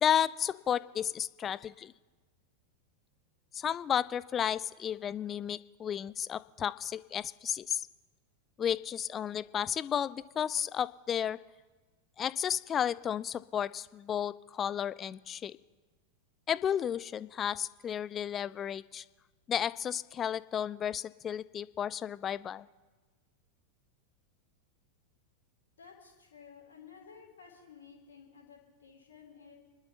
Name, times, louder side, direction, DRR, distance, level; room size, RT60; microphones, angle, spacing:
voice 1, 0.0-1.9 3.5-7.9 8.6-11.4 12.2-15.6 16.5-19.0 19.5-22.7, left 9 dB, 25° left, 18 dB, 0.4 m, -33 dB
voice 2, 25.8-29.5, left 6 dB, 65° left, -1 dB, 3.1 m, -54 dB
30.0 x 12.0 x 2.9 m, 1.3 s
figure-of-eight pair, 90°, 0 cm